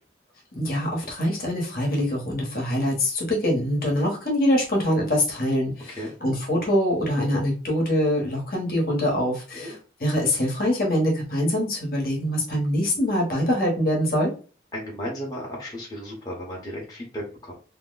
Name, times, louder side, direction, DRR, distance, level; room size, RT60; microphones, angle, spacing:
voice 1, 0.5-14.3, left 1 dB, 50° left, -1 dB, 1.1 m, -24 dB
voice 2, 14.7-17.5, equal, 20° left, -4 dB, 1.0 m, -34 dB
2.8 x 2.1 x 3.9 m, 0.36 s
head